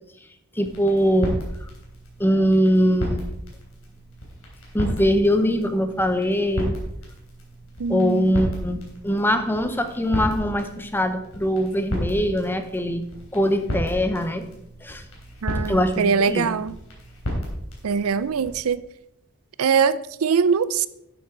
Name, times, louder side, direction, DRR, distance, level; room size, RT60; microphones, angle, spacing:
voice 1, 0.5-1.7 2.2-3.2 4.7-6.7 7.9-13.0 13.3-14.5 14.8-15.0 15.7-16.5, equal, 10° left, 8 dB, 0.8 m, -22 dB
sound 1, 0.6-18.5, equal, 70° left, 3.3 m, -33 dB
voice 2, 7.8-8.4 15.4-16.7 17.8-18.8 19.6-20.9, right 6 dB, 80° right, 16 dB, 0.5 m, -22 dB
11.5 x 7.7 x 3.8 m, 0.79 s
head